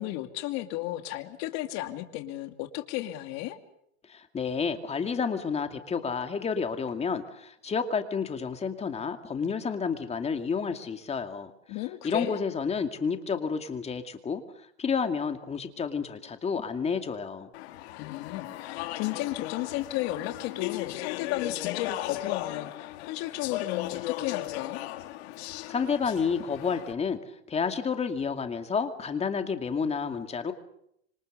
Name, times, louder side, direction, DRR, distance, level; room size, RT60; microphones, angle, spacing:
voice 1, 0.0-3.6 11.7-12.4 18.0-24.8, left 15 dB, 55° left, 6 dB, 2.6 m, -34 dB
voice 2, 4.1-11.5 12.0-17.5 25.7-27.2 27.5-30.5, left 5 dB, 20° left, 7 dB, 2.4 m, -30 dB
Speech / Chatter, 17.5-26.9, left 15 dB, 75° left, 2.4 m, -36 dB
26.5 x 25.5 x 6.8 m, 0.74 s
supercardioid pair, 135°, 33 cm